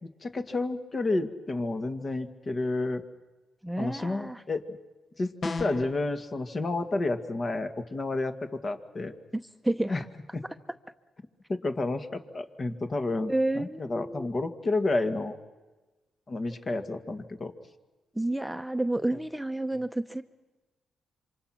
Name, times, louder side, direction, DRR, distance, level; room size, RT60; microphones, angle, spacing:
voice 1, 0.0-3.0 3.8-4.8 5.2-9.1 9.9-10.0 10.3-10.4 11.5-15.4 16.3-17.5, left 2 dB, 45° left, 7 dB, 2.0 m, -30 dB
voice 2, 3.6-4.4 9.3-10.0 13.3-14.3 18.1-20.2, right 1 dB, 5° right, 8 dB, 0.9 m, -30 dB
sound 1, 5.4-6.0, left 3 dB, 60° left, 2.1 m, -33 dB
27.0 x 25.0 x 6.0 m, 1.2 s
supercardioid pair, 50°, 0 cm